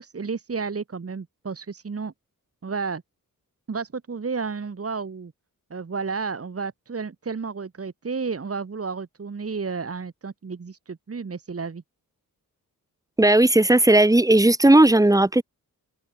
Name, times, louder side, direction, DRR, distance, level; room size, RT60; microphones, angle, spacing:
voice 1, 0.0-2.1 2.6-3.0 3.7-5.3 5.7-11.8, right 5 dB, 40° right, 2.0 m, -32 dB
voice 2, 13.2-15.4, right 1 dB, 10° right, 1.3 m, -16 dB
open air
wide cardioid pair, 95°, 35 cm